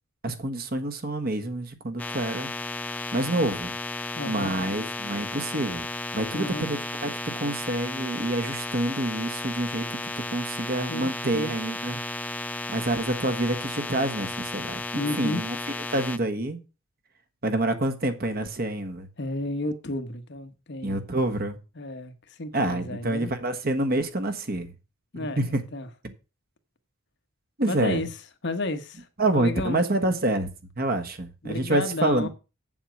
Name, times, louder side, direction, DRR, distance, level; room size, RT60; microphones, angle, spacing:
voice 1, 0.2-2.5 3.1-3.7 4.3-5.9 6.1-7.1 7.4-10.0 10.3-12.0 12.7-15.6 15.9-16.6 17.4-19.1 20.8-21.6 22.5-24.7 25.4-25.6 27.6-28.0 29.2-32.3, right 1 dB, 45° right, 1.4 m, -27 dB
sound 1, 2.0-16.2, left 2 dB, 5° left, 0.5 m, -34 dB
voice 2, 4.1-4.5 6.3-6.7 10.9-11.5 14.9-15.4 19.2-21.0 21.7-23.3 25.1-25.9 27.6-28.1 28.4-29.8 31.4-32.3, left 2 dB, 55° left, 1.2 m, -32 dB
8.0 x 7.4 x 6.3 m
head